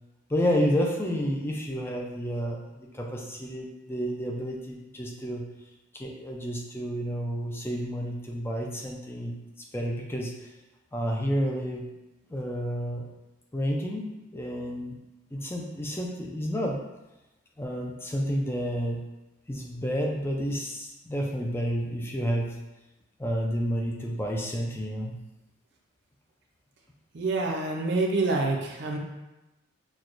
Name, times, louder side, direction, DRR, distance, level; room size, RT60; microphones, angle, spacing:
voice 1, 0.3-5.4 5.9-9.3 9.7-10.3 10.9-11.9 12.3-13.0 13.5-14.0 14.3-15.0 15.3-16.8 17.6-19.0 19.5-22.6 23.2-25.2, equal, 10° left, 0 dB, 0.4 m, -30 dB
voice 2, 27.1-29.0, right 3 dB, 55° right, 1 dB, 0.5 m, -27 dB
6.0 x 2.3 x 2.5 m, 1.0 s
head